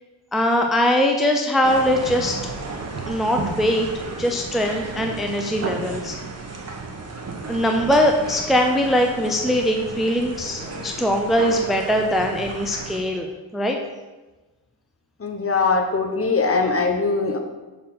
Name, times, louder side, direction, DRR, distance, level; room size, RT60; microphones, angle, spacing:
voice 1, 0.3-2.4 3.1-3.9 4.2-6.1 7.5-13.3 13.5-13.8, equal, ahead, 2 dB, 0.6 m, -21 dB
sound 1, 1.6-13.0, right 3 dB, 35° right, 1.2 m, -33 dB
voice 2, 15.2-17.4, left 4 dB, 30° left, 4 dB, 1.0 m, -21 dB
6.2 x 4.2 x 5.8 m, 1.2 s
cardioid pair, 90°, 43 cm